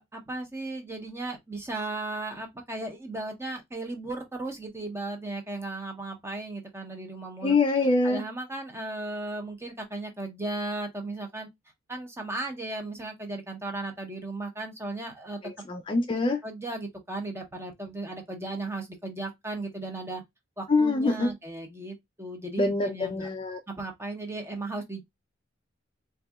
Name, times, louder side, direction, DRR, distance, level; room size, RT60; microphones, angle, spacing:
voice 1, 0.0-7.6 8.0-11.5 11.9-15.4 16.4-20.2 20.6-23.3 23.7-25.0, right 2 dB, 15° right, 0.7 m, -36 dB
voice 2, 7.4-8.2 15.7-16.4 20.7-21.3 22.6-23.6, left 3 dB, 25° left, 0.3 m, -24 dB
3.9 x 2.6 x 2.2 m
head